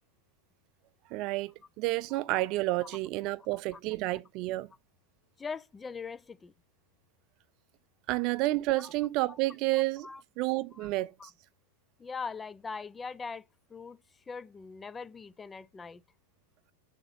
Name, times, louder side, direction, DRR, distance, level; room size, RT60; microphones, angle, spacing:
voice 1, 1.1-4.7 8.1-10.1 10.4-11.3, right 19 dB, 40° right, 0.5 m, -30 dB
voice 2, 5.4-6.5 8.8-8.9 9.3-9.4 10.0-10.2 10.7-10.9 11.2-11.3 12.0-14.0 14.3-16.0, left 5 dB, 15° left, 0.4 m, -41 dB
6.9 x 2.9 x 5.3 m
figure-of-eight pair, 90°, 0 cm